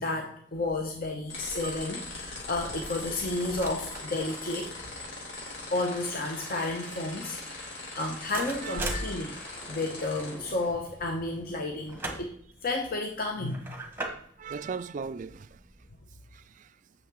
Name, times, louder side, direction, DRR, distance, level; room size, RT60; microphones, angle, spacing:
voice 1, 0.0-4.7 5.7-9.4 9.7-12.3 12.6-13.7, left 2 dB, 50° left, 0.9 m, -32 dB
sound 1, 0.5-16.0, right 2 dB, 10° right, 1.2 m, -43 dB
sound 2, 1.3-10.3, left 2 dB, 70° left, 3.5 m, -41 dB
voice 2, 1.5-1.9 8.6-9.0 14.4-15.6 16.3-16.7, right 5 dB, 40° right, 0.3 m, -38 dB
sound 3, 5.7-12.2, right 1 dB, 10° left, 1.8 m, -49 dB
8.6 x 6.6 x 3.6 m
head